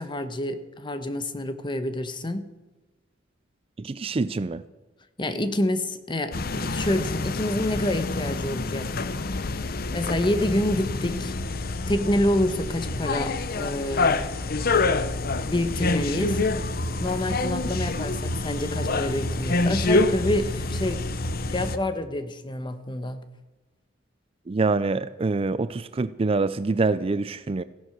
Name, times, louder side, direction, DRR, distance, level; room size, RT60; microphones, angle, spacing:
voice 1, 0.0-2.5 5.2-8.9 9.9-11.3 11.9-14.2 15.4-16.4 17.0-21.1 21.5-23.2, left 1 dB, 25° left, 1.1 m, -27 dB
voice 2, 3.8-4.6 24.5-27.6, right 3 dB, 30° right, 0.4 m, -25 dB
sound 1, 6.3-21.8, left 3 dB, 55° left, 0.8 m, -27 dB
15.5 x 11.0 x 6.5 m
head